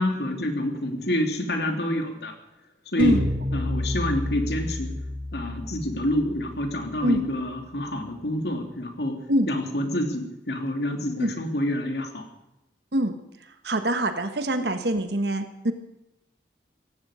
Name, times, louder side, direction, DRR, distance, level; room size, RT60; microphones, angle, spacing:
voice 1, 0.0-2.3 2.9-3.2 3.5-4.9 5.3-9.2 9.5-12.2, left 1 dB, 65° left, 4 dB, 2.9 m, -27 dB
sound 1, 3.0-7.3, left 1 dB, 30° right, 7.5 m, -31 dB
voice 2, 13.4-15.7, right 1 dB, 65° right, 8 dB, 1.5 m, -24 dB
18.0 x 15.5 x 5.1 m, 0.91 s
head